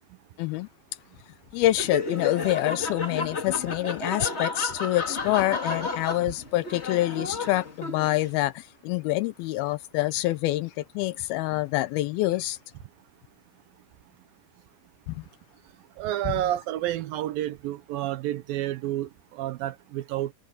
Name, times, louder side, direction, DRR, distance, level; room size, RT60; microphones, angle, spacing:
voice 1, 0.4-0.7 1.5-12.6 15.1-15.2 16.3-16.4, left 16 dB, 80° left, 2.4 m, -26 dB
Laughter, 1.7-8.3, left 3 dB, 25° left, 1.4 m, -32 dB
voice 2, 15.6-20.3, right 13 dB, 75° right, 2.3 m, -30 dB
omnidirectional pair, 4.6 m